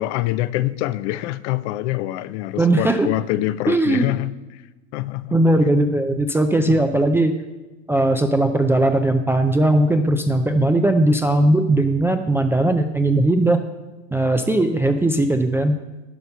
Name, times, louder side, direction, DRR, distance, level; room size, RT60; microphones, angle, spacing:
voice 1, 0.0-4.6 4.9-5.4 6.7-7.1, left 16 dB, 60° left, 16 dB, 0.5 m, -25 dB
voice 2, 2.6-3.1 3.7-4.1 5.3-7.4 7.9-13.6 14.1-15.8, right 1 dB, 5° right, 5 dB, 0.3 m, -18 dB
10.5 x 5.5 x 5.4 m, 1.2 s
hypercardioid pair, 105°, 39 cm